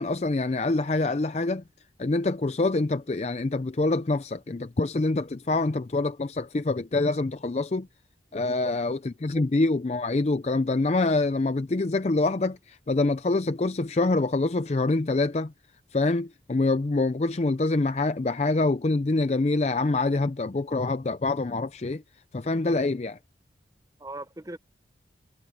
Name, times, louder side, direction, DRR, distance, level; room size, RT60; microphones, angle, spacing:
voice 1, 0.0-1.6 2.0-7.9 8.3-15.5 15.9-22.0 22.3-23.2, left 2 dB, 35° left, 0.5 m, -25 dB
voice 2, 8.4-8.9 9.3-9.4 24.0-24.6, right 1 dB, 20° right, 0.6 m, -40 dB
head